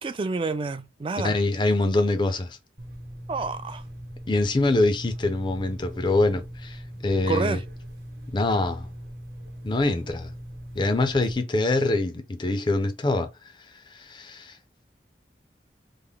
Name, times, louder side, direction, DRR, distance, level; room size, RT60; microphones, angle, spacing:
voice 1, 0.0-1.3 3.3-3.8 7.3-7.6, right 4 dB, 30° right, 0.3 m, -28 dB
voice 2, 1.2-2.6 4.3-7.6 8.3-8.9 9.6-10.3 10.8-13.3 13.9-14.6, left 2 dB, 25° left, 0.5 m, -24 dB
sound 1, 2.8-11.4, equal, 55° right, 1.0 m, -40 dB
3.4 x 2.1 x 3.6 m
head